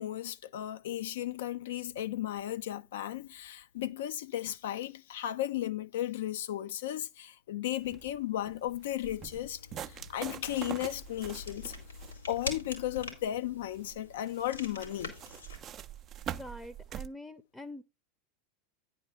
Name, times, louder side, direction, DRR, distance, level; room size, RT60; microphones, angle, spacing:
voice 1, 0.0-11.7 12.3-15.2, left 13 dB, 70° left, 0.6 m, -35 dB
sound 1, 7.8-17.1, right 10 dB, 35° right, 0.5 m, -45 dB
sound 2, 9.0-15.6, left 3 dB, 90° left, 2.9 m, -45 dB
voice 2, 16.3-17.8, left 1 dB, 10° left, 0.7 m, -45 dB
9.8 x 4.4 x 5.2 m
hypercardioid pair, 90°, 0 cm